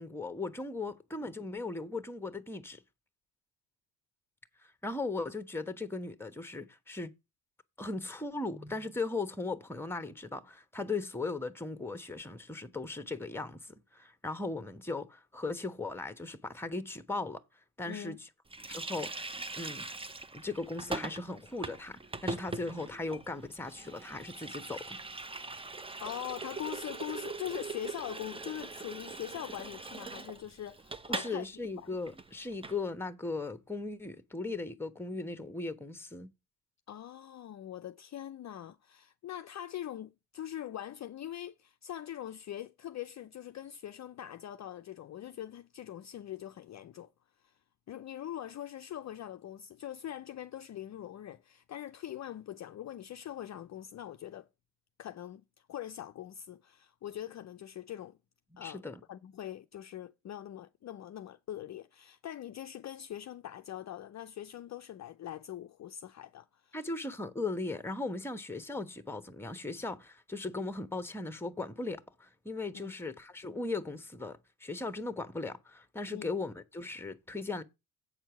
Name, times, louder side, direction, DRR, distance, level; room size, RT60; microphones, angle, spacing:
voice 1, 0.0-2.8 4.6-7.1 7.8-17.4 17.8-18.3 18.7-19.9 20.3-25.0 31.1-36.3 58.6-59.0 66.7-77.6, left 3 dB, 5° left, 1.1 m, -38 dB
voice 2, 17.9-18.2 26.0-31.4 31.8-31.9 36.9-47.1 47.4-47.5 47.9-54.5 55.0-55.4 55.7-58.2 58.6-58.8 59.1-66.8 72.7-72.9 76.1-76.3, left 11 dB, 40° left, 0.6 m, -42 dB
Water tap faucet, 18.5-31.4 31.6-31.8 32.1-32.8, right 3 dB, 15° right, 0.6 m, -41 dB
8.1 x 4.5 x 7.0 m
supercardioid pair, 70°, 44 cm